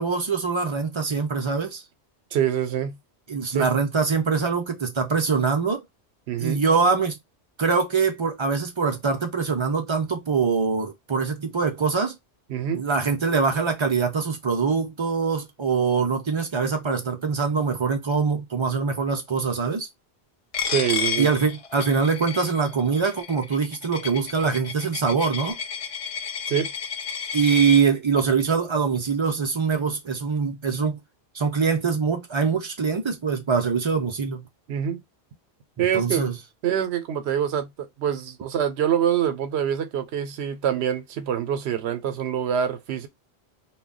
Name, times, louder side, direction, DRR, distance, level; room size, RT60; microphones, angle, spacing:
voice 1, 0.0-1.8 3.3-5.8 6.4-7.2 7.6-12.1 12.7-19.9 21.2-25.6 27.3-31.0 31.3-34.4 35.8-36.3, right 5 dB, 40° right, 0.4 m, -23 dB
voice 2, 2.3-3.0 3.5-3.7 6.3-6.6 12.5-12.8 20.7-21.3 26.5-26.7 34.7-35.0 35.8-36.3 36.6-43.1, right 9 dB, 85° right, 0.8 m, -25 dB
Coin (dropping), 20.5-27.8, left 6 dB, 55° left, 0.4 m, -31 dB
2.2 x 2.1 x 3.6 m
omnidirectional pair, 1.1 m